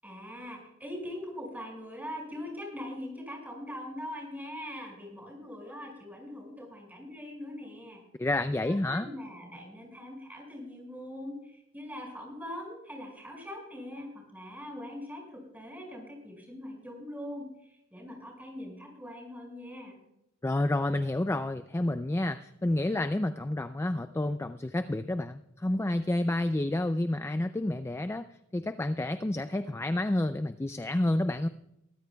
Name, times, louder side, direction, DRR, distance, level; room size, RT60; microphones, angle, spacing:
voice 1, 0.0-8.0 8.6-20.0, left 1 dB, 10° right, 0 dB, 5.7 m, -42 dB
voice 2, 8.2-9.1 20.4-28.3 28.5-31.5, left 1 dB, 15° left, 10 dB, 0.4 m, -29 dB
22.5 x 14.0 x 2.3 m, 0.82 s
head